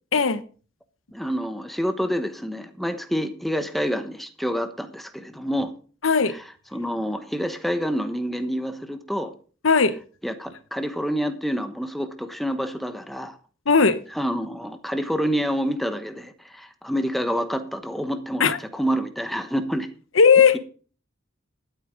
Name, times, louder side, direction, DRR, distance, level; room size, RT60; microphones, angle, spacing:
voice 1, 0.1-0.4 6.0-6.4 9.6-10.0 13.7-14.0 18.4-18.6 20.1-20.6, left 5 dB, 85° left, 0.9 m, -17 dB
voice 2, 1.1-5.7 6.7-9.3 10.2-13.4 14.2-19.9, equal, ahead, 1.1 m, -27 dB
12.5 x 8.2 x 5.1 m
head